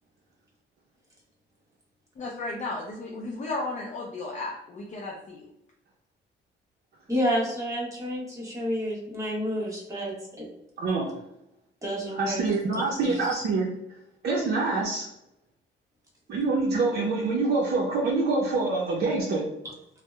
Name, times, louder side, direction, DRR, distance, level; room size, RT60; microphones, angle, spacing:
voice 1, 2.2-5.5, left 2 dB, 40° left, -2 dB, 0.5 m, -34 dB
voice 2, 7.1-10.5 11.8-12.4 12.7-13.4, equal, 15° right, -4 dB, 1.0 m, -30 dB
voice 3, 10.8-11.1 12.1-13.7 14.2-15.1 16.3-19.4, right 3 dB, 55° right, -3 dB, 0.5 m, -25 dB
2.7 x 2.0 x 2.2 m, 0.82 s
cardioid pair, 90°, 20 cm